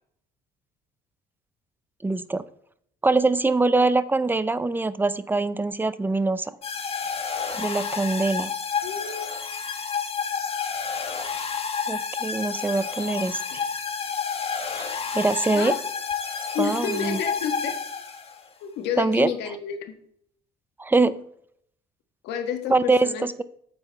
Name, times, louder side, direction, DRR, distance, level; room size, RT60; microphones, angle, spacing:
voice 1, 2.0-2.4 3.0-6.5 7.6-8.5 11.9-13.6 14.8-14.9 15.1-15.8 16.6-17.2 19.0-19.3 20.8-21.2 22.7-23.4, right 3 dB, 10° right, 15 dB, 0.6 m, -23 dB
sound 1, 6.6-18.4, left 6 dB, 35° left, 1.4 m, -30 dB
voice 2, 8.8-9.3 13.5-13.8 15.5-15.8 16.5-17.7 18.6-20.0 22.2-23.3, left 7 dB, 85° left, 6 dB, 1.6 m, -30 dB
9.2 x 7.8 x 3.5 m, 0.66 s
cardioid pair, 110°, 17 cm